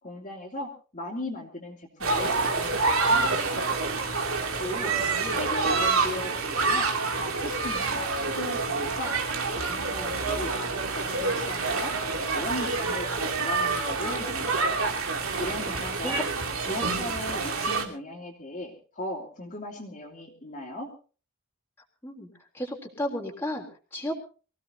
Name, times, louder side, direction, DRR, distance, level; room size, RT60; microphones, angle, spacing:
voice 1, 0.0-3.8 4.6-4.9 5.3-6.9 7.2-9.1 9.5-10.5 10.9-11.9 12.3-14.6 15.4-16.2 16.7-20.9, left 1 dB, 35° left, 0 dB, 3.0 m, -37 dB
sound 1, 2.0-17.8, right 3 dB, 75° right, 2.8 m, -27 dB
voice 2, 5.0-5.4 15.7-16.2 16.6-17.1 22.0-22.3 22.5-24.1, left 1 dB, 10° left, -1 dB, 3.4 m, -34 dB
25.0 x 16.5 x 2.8 m, 0.36 s
head